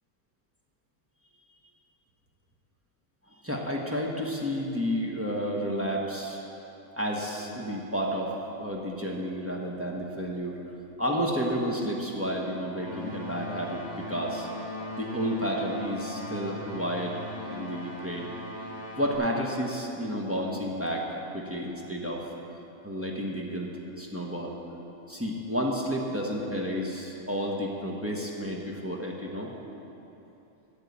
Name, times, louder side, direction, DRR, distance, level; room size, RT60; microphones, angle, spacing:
voice 1, 3.4-6.4 7.0-10.6 11.0-14.5 15.0-18.3 19.0-22.3 22.8-23.7 24.0-24.6 25.1-29.5, equal, 10° right, -2 dB, 1.0 m, -31 dB
sound 1, 12.7-19.2, left 1 dB, 30° left, 2.5 m, -39 dB
9.0 x 7.3 x 8.2 m, 2.9 s
omnidirectional pair, 1.4 m